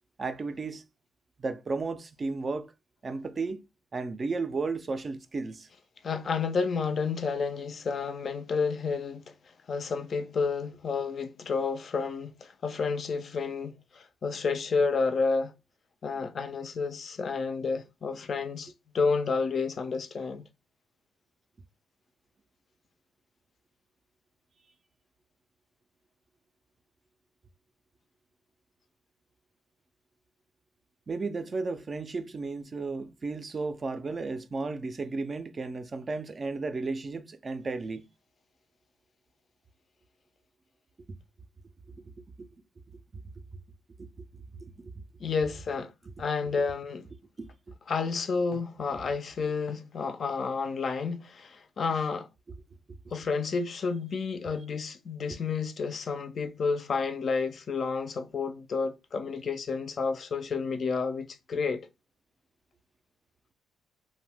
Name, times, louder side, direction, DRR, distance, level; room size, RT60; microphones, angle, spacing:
voice 1, 0.2-0.8 1.4-2.7 3.0-3.7 3.9-5.7 31.1-38.1 42.2-42.5 44.0-44.2 44.6-44.9 47.4-47.5, right 3 dB, 35° right, 0.3 m, -34 dB
voice 2, 6.0-9.3 9.7-15.5 16.0-20.4 45.2-45.9 46.2-47.1 47.9-52.3 53.1-61.9, left 4 dB, 50° left, 0.3 m, -30 dB
2.6 x 2.1 x 3.3 m
cardioid pair, 90°, 0 cm